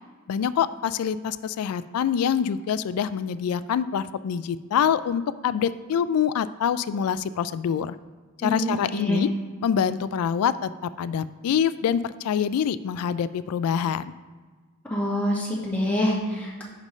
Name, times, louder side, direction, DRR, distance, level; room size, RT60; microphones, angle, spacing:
voice 1, 0.3-8.0 8.4-9.3 9.6-14.1, left 8 dB, 85° left, 16 dB, 0.3 m, -25 dB
voice 2, 8.4-9.3 14.9-16.6, left 1 dB, 5° left, -6 dB, 1.7 m, -26 dB
10.5 x 5.1 x 3.1 m, 1.4 s
head